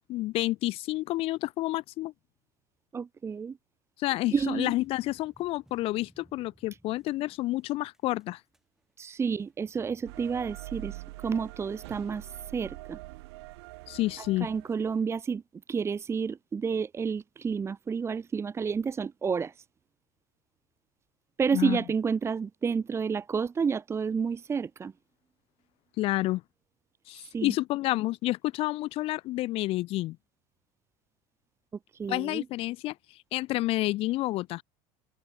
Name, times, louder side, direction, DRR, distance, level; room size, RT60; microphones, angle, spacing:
voice 1, 0.1-2.1 4.0-8.4 13.9-14.5 21.5-21.8 26.0-26.4 27.1-30.2 32.1-34.6, left 17 dB, 45° left, 0.4 m, -29 dB
voice 2, 2.9-3.6 4.3-4.7 9.0-13.0 14.4-15.4 15.7-19.6 21.4-24.9 27.3-27.5 31.9-32.4, right 6 dB, 20° right, 1.2 m, -30 dB
sound 1, 4.3-11.2, right 1 dB, 5° right, 6.3 m, -62 dB
sound 2, 10.1-15.1, right 22 dB, 90° right, 3.0 m, -44 dB
open air
cardioid pair, 140°, 14 cm